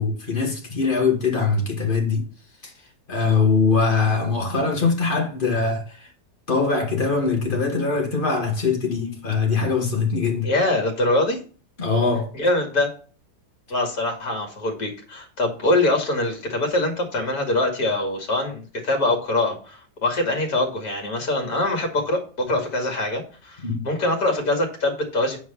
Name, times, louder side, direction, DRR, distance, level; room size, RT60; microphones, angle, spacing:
voice 1, 0.0-2.2 2.6-2.7 3.1-6.1 6.5-10.5 11.8-12.3 23.6-23.8, left 4 dB, 30° left, 2.3 m, -22 dB
voice 2, 10.4-11.4 12.3-12.9 13.7-25.4, left 2 dB, 55° left, 2.9 m, -23 dB
8.8 x 4.8 x 5.6 m
omnidirectional pair, 1.9 m